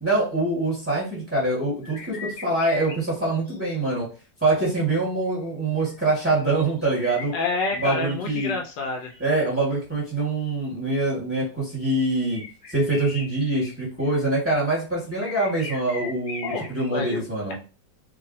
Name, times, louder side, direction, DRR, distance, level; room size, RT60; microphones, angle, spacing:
voice 1, 0.0-4.1 4.4-7.3 7.8-8.5 9.2-12.4 12.7-17.6, right 2 dB, 10° right, -6 dB, 1.4 m, -24 dB
sound 1, 1.8-3.0 3.5-3.7 5.8-8.6 8.9-9.5 12.3-13.7 14.0-14.8 15.2-16.9, left 3 dB, 50° left, 0.4 m, -39 dB
voice 2, 7.3-9.1 16.4-17.2, left 3 dB, 75° left, 2 dB, 1.2 m, -28 dB
3.1 x 2.5 x 2.7 m, 0.34 s
omnidirectional pair, 1.9 m